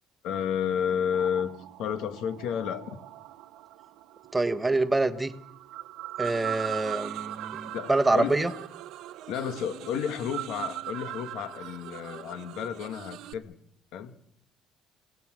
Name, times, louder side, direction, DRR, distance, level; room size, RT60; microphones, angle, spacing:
voice 1, 0.2-1.5 1.8-3.0 7.7-8.5 9.3-13.6 13.9-14.1, left 8 dB, 70° left, 1.8 m, -31 dB
sound 1, 1.1-12.7, right 14 dB, 85° right, 1.0 m, -41 dB
voice 2, 4.3-5.3 6.2-8.5, right 2 dB, 10° right, 1.3 m, -26 dB
sound 2, 6.2-13.3, right 13 dB, 65° right, 1.3 m, -45 dB
29.5 x 18.0 x 6.3 m
cardioid pair, 155°, 0 cm